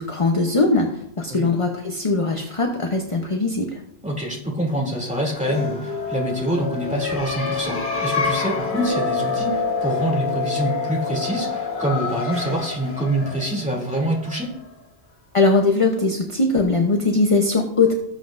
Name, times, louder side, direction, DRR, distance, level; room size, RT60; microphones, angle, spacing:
voice 1, 0.0-3.8 15.3-17.9, left 3 dB, 35° left, 3 dB, 0.9 m, -20 dB
voice 2, 4.0-14.5, right 1 dB, 5° right, -2 dB, 2.6 m, -25 dB
sound 1, 5.2-14.7, left 4 dB, 55° left, 2.0 m, -27 dB
18.5 x 7.6 x 2.6 m, 0.75 s
omnidirectional pair, 1.1 m